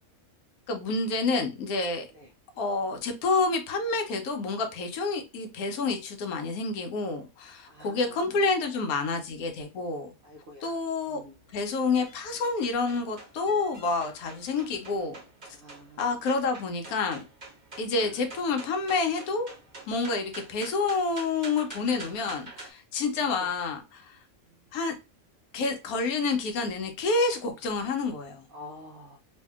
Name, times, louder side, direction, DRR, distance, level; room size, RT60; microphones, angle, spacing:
voice 1, 0.7-2.1 2.6-10.1 10.6-11.2 11.5-15.2 16.0-17.2 17.8-19.5 19.9-24.2 24.7-25.0 25.5-28.5, left 3 dB, 85° left, 1.1 m, -28 dB
voice 2, 7.7-8.9 10.2-10.8 11.0-11.4 15.5-16.0 24.5-24.6 28.5-29.2, left 1 dB, 80° right, 0.4 m, -48 dB
sound 1, 11.0-22.7, right 2 dB, 40° right, 0.8 m, -47 dB
2.7 x 2.4 x 2.3 m
omnidirectional pair, 1.5 m